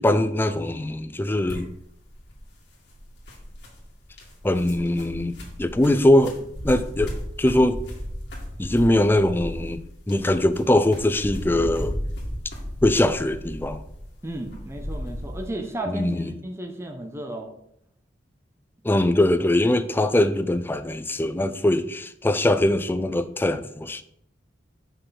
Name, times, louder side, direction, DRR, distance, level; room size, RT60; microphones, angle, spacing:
voice 1, 0.0-1.7 4.4-6.4 6.6-7.8 8.6-9.8 10.1-12.0 12.8-13.8 15.9-16.3 18.8-24.0, left 1 dB, 10° left, 0.3 m, -22 dB
sound 1, 1.5-15.5, equal, 65° left, 1.9 m, -35 dB
voice 2, 14.2-17.5, right 1 dB, 15° right, 0.7 m, -34 dB
5.7 x 5.6 x 4.2 m
head